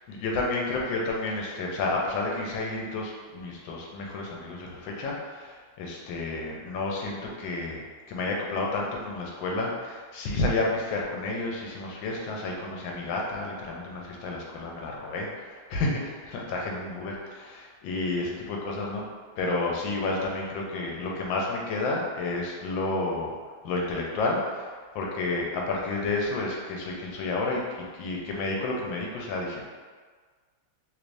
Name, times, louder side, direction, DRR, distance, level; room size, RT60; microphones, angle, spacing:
voice 1, 0.0-19.0 19.4-23.3 23.6-27.6 27.9-29.6, left 2 dB, 75° left, -1 dB, 1.3 m, -31 dB
3.2 x 3.2 x 2.5 m, 1.5 s
omnidirectional pair, 2.2 m